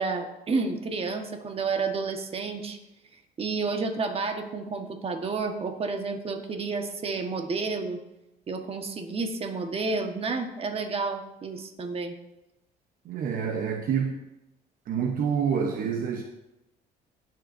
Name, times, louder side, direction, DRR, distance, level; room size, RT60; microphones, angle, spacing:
voice 1, 0.0-2.8 3.4-8.0 8.5-12.2, right 4 dB, 35° right, 5 dB, 1.4 m, -30 dB
voice 2, 13.0-14.2 14.9-16.2, right 7 dB, 60° right, 4 dB, 0.9 m, -27 dB
18.5 x 7.6 x 2.7 m, 0.91 s
cardioid pair, 110°, 17 cm